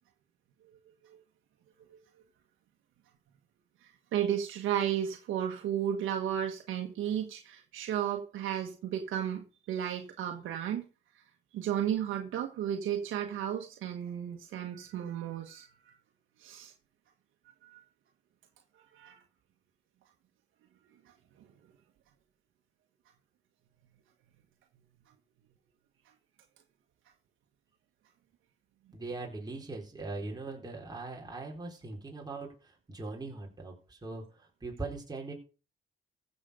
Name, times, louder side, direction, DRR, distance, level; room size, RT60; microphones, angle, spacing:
voice 1, 3.8-10.8 11.5-15.9 16.4-16.7 17.6-17.8 18.9-19.2 21.4-21.5, right 10 dB, 80° right, 1.6 m, -34 dB
voice 2, 28.9-35.3, right 3 dB, 20° right, 4.3 m, -41 dB
15.0 x 7.1 x 5.1 m
cardioid pair, 90°, 20 cm